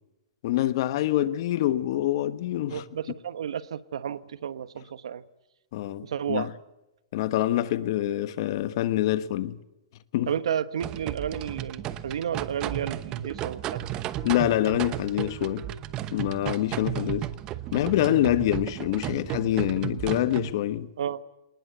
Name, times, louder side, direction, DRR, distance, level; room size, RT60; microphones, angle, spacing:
voice 1, 0.4-2.8 5.7-6.5 7.1-9.6 10.1-10.3 14.2-15.7 16.1-17.3 17.7-20.9, left 13 dB, 45° left, 1.3 m, -26 dB
voice 2, 2.7-5.2 6.0-6.5 10.3-13.8 21.0-21.2, right 8 dB, 75° right, 1.2 m, -32 dB
sound 1, 10.8-20.5, right 13 dB, 25° right, 0.9 m, -34 dB
26.0 x 20.0 x 8.2 m
hypercardioid pair, 155°, 3 cm